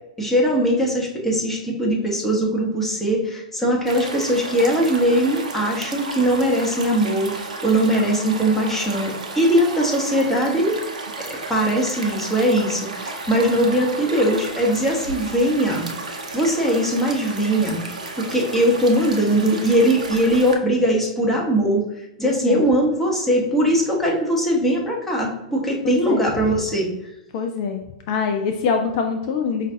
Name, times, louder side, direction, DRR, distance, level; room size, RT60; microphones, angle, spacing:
voice 1, 0.2-10.8 11.2-17.9 18.2-26.9, right 1 dB, 5° left, -3 dB, 1.1 m, -20 dB
sound 1, 3.9-20.6, right 3 dB, 75° right, 0.7 m, -33 dB
voice 2, 22.2-22.6 25.8-26.2 27.3-29.7, left 5 dB, 45° left, 4 dB, 0.4 m, -24 dB
5.0 x 2.4 x 2.7 m, 0.91 s
figure-of-eight pair, 105°, 4 cm